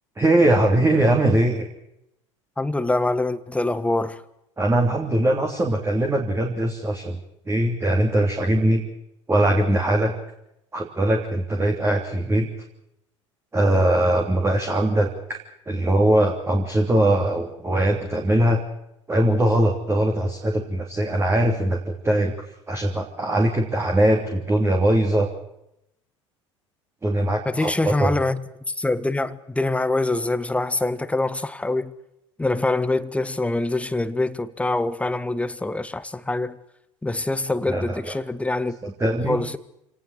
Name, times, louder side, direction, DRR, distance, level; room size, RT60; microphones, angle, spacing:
voice 1, 0.2-1.7 4.6-7.2 7.5-8.9 9.3-10.1 10.7-12.5 13.5-15.4 15.7-18.6 19.1-22.3 22.7-25.3 27.0-28.1 37.7-38.0 38.8-39.4, right 1 dB, 15° right, 3.0 m, -21 dB
voice 2, 2.6-4.2 27.4-31.9 32.4-36.6 37.0-38.8 39.2-39.6, left 2 dB, 10° left, 1.3 m, -24 dB
27.5 x 18.5 x 6.4 m
figure-of-eight pair, 70°, 16 cm